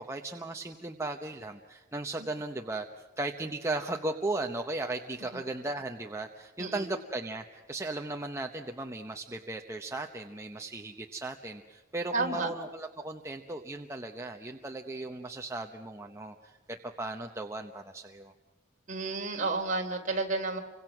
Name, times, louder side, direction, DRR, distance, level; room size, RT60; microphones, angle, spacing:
voice 1, 0.0-2.9 3.2-18.3, right 2 dB, 15° right, 3 dB, 0.9 m, -36 dB
voice 2, 12.1-12.5 18.9-20.6, right 3 dB, 40° right, 1 dB, 3.4 m, -31 dB
29.5 x 25.0 x 6.0 m, 1.3 s
head